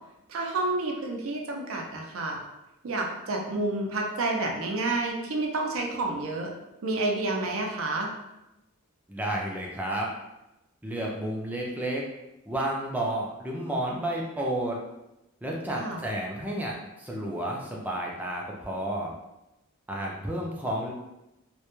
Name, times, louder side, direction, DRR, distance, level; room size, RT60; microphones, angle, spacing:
voice 1, 0.3-2.4 2.8-6.5 6.8-8.1 15.7-16.0, right 2 dB, 70° right, 1 dB, 0.5 m, -29 dB
voice 2, 9.1-10.1 10.8-12.0 12.5-14.8 15.4-19.1 19.9-20.9, right 1 dB, 10° right, -2 dB, 0.3 m, -31 dB
2.2 x 2.1 x 2.9 m, 0.94 s
head